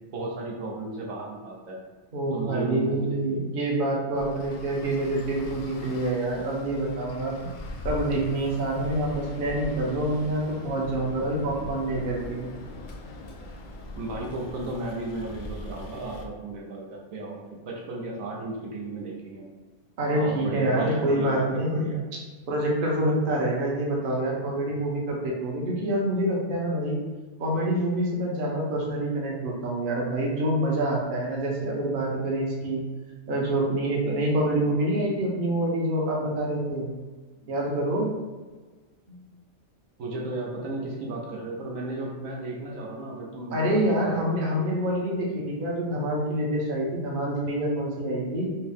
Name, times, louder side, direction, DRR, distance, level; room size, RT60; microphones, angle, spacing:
voice 1, 0.1-1.8 2.3-3.4 13.9-19.5 20.1-22.0 40.0-44.0, right 2 dB, 80° right, -1 dB, 1.1 m, -34 dB
voice 2, 2.1-7.5 7.8-12.5 20.0-21.9 22.5-27.0 27.4-32.8 33.3-36.9 37.4-38.1 39.1-39.2 43.5-48.5, right 1 dB, 45° right, -2 dB, 0.8 m, -26 dB
Traffic noise roadway noise, 4.2-16.2, left 2 dB, 80° left, 0.4 m, -40 dB
4.4 x 2.0 x 3.4 m, 1.3 s
omnidirectional pair, 1.4 m